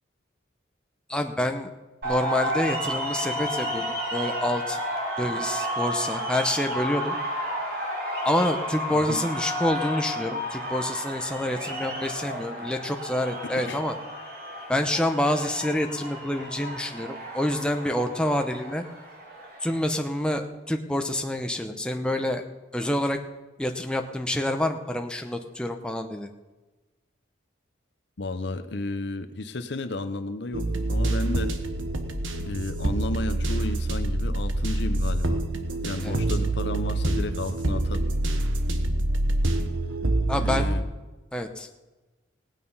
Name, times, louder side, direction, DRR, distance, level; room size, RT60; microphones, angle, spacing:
voice 1, 1.1-1.7 2.0-3.8 4.1-4.8 5.2-7.2 8.2-13.9 14.7-18.8 19.6-22.4 22.7-23.2 23.6-26.3 36.0-36.1 40.3-40.8 41.3-41.7, left 1 dB, 5° left, 4 dB, 0.8 m, -27 dB
sound 1, 2.0-19.8, equal, 50° right, 3.1 m, -32 dB
voice 2, 28.2-31.6 32.4-35.4 35.8-38.1 40.3-40.8, left 2 dB, 60° left, 10 dB, 0.8 m, -33 dB
sound 2, 30.5-40.6, right 1 dB, 90° right, 1.3 m, -26 dB
18.0 x 9.2 x 5.5 m, 1.2 s
head